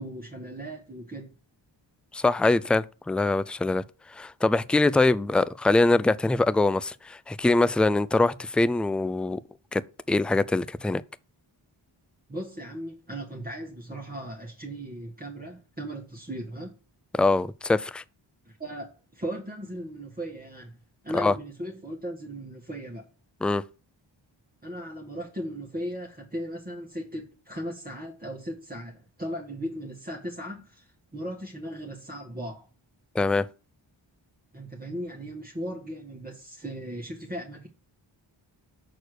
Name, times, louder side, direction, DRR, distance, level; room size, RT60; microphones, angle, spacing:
voice 1, 0.0-1.3 12.3-16.8 18.5-20.8 21.0-23.1 24.6-32.7 34.5-37.7, right 1 dB, 20° right, 1.5 m, -37 dB
voice 2, 2.1-3.8 4.1-9.4 9.7-9.8 10.1-11.0 17.1-18.0 21.1-21.3 23.4-23.6 33.2-33.5, left 2 dB, ahead, 0.3 m, -23 dB
6.5 x 4.3 x 6.4 m
cardioid pair, 40°, 48 cm